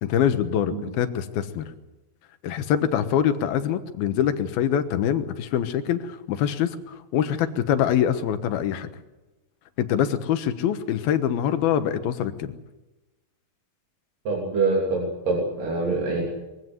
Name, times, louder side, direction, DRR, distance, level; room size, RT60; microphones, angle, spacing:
voice 1, 0.0-1.7 2.4-8.9 9.8-12.5, left 9 dB, 85° left, 10 dB, 3.2 m, -24 dB
voice 2, 14.3-16.2, right 3 dB, 65° right, -1 dB, 4.7 m, -25 dB
23.0 x 16.0 x 9.7 m, 1.1 s
omnidirectional pair, 4.2 m